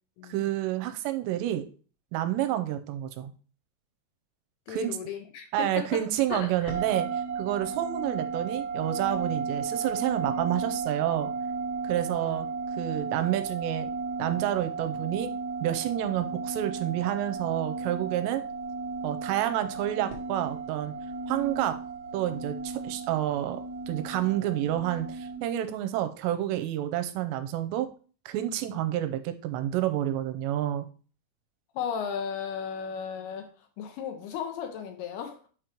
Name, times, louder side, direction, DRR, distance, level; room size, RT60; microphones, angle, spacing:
voice 1, 0.3-1.6 2.1-3.3 4.7-5.0 5.5-7.1 7.4-11.3 11.8-12.5 12.8-13.9 14.2-15.3 15.6-18.4 19.0-20.9 21.3-21.8 22.1-23.6 23.9-27.9 28.3-30.9, right 12 dB, 85° right, 2.8 m, -29 dB
voice 2, 4.7-6.1 6.3-6.7 12.1-12.5 31.7-35.4, left 7 dB, 75° left, 2.6 m, -35 dB
sound 1, 6.7-25.4, right 4 dB, 60° right, 1.9 m, -34 dB
8.7 x 3.0 x 5.1 m
omnidirectional pair, 5.0 m